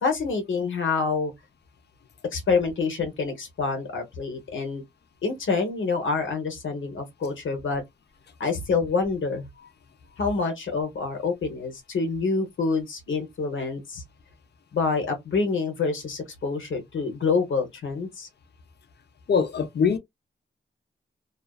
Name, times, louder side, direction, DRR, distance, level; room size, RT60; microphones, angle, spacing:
voice 1, 0.0-1.3 2.3-4.8 5.2-7.8 8.4-9.5 10.2-14.0 14.7-18.3, left 4 dB, 85° left, 0.8 m, -27 dB
voice 2, 19.3-20.0, left 6 dB, 60° left, 0.6 m, -22 dB
2.4 x 2.4 x 2.3 m
wide cardioid pair, 85°, 20 cm